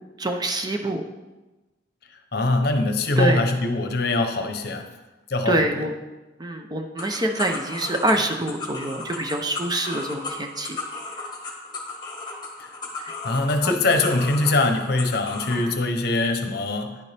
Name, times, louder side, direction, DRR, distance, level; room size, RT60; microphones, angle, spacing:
voice 1, 0.2-1.0 3.2-3.4 5.5-5.9 6.4-10.8 13.6-13.7 15.5-15.8, right 1 dB, 20° right, 4 dB, 0.6 m, -25 dB
voice 2, 2.3-4.9 5.3-5.6 12.6-12.7 13.2-17.0, left 2 dB, 60° left, 6 dB, 0.8 m, -22 dB
sound 1, 7.0-15.6, left 3 dB, 20° left, 1.4 m, -35 dB
9.9 x 6.9 x 3.4 m, 1.1 s
head